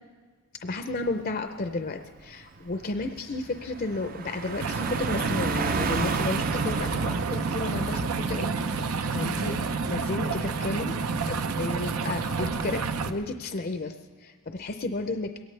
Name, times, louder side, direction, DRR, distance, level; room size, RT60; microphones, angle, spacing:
voice 1, 0.6-8.8 9.1-9.5 9.9-11.0 11.3-13.9 14.2-15.3, left 2 dB, 40° left, 7 dB, 0.5 m, -32 dB
Car passing by, 1.1-1.3 1.7-12.7, right 4 dB, 40° right, 0.5 m, -35 dB
sound 1, 4.6-13.1, right 4 dB, 85° right, 0.7 m, -29 dB
21.5 x 17.5 x 3.3 m, 1.5 s
head